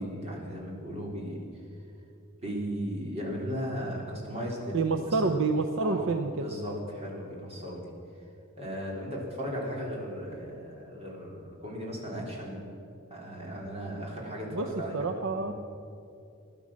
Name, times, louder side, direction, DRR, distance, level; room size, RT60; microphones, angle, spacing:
voice 1, 0.0-1.4 2.4-5.2 5.8-6.0 6.4-7.8 8.6-12.7 13.1-15.0 15.3-15.5, equal, 30° right, -3 dB, 3.7 m, -36 dB
voice 2, 4.7-6.5 14.5-14.7 14.9-15.5, right 3 dB, 65° right, 7 dB, 0.7 m, -28 dB
16.0 x 12.0 x 7.4 m, 2.6 s
head